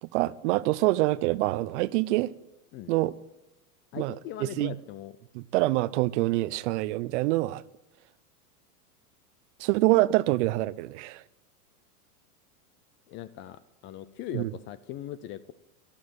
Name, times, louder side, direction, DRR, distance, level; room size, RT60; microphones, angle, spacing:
voice 1, 0.0-2.3 2.9-3.1 3.9-4.1 4.4-4.7 5.3-7.6 9.6-11.2 14.3-14.5, right 18 dB, 50° right, 0.6 m, -25 dB
voice 2, 3.9-5.1 13.1-15.5, left 11 dB, 25° left, 0.4 m, -40 dB
13.0 x 11.5 x 8.8 m
hypercardioid pair, 125°, 46 cm